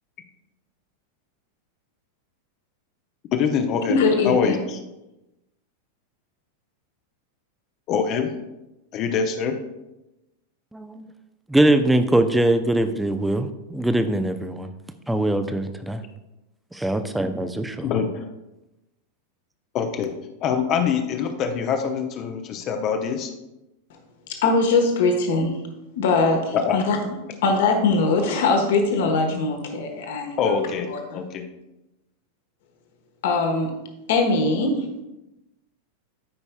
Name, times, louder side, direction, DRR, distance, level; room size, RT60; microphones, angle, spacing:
voice 1, 3.3-4.0 4.2-4.8 7.9-8.3 8.9-9.5 17.8-18.3 19.7-20.1 20.4-23.3 26.5-26.8 30.4-31.4, left 6 dB, 35° left, 5 dB, 0.8 m, -24 dB
voice 2, 3.9-4.5 24.4-25.6 25.9-27.0 27.4-30.6 30.9-31.2 33.2-33.8 34.1-34.9, left 3 dB, 55° left, 4 dB, 1.3 m, -21 dB
voice 3, 10.7-11.0 11.5-14.7 15.1-16.0 16.7-17.9, right 1 dB, 5° right, 8 dB, 0.5 m, -22 dB
12.5 x 5.4 x 2.3 m, 0.96 s
figure-of-eight pair, 90°, 0 cm